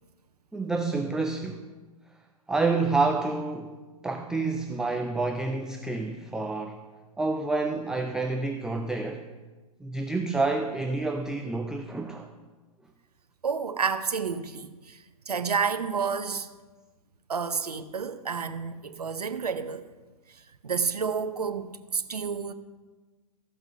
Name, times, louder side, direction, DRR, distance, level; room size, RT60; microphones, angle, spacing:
voice 1, 0.5-1.7 2.5-3.8 4.0-6.8 7.2-9.2 9.8-12.3, right 3 dB, 5° right, 0.4 m, -28 dB
voice 2, 13.4-16.5 17.3-19.9 20.3-22.5, right 6 dB, 85° right, 0.8 m, -30 dB
14.5 x 5.9 x 5.3 m
figure-of-eight pair, 115°, 20 cm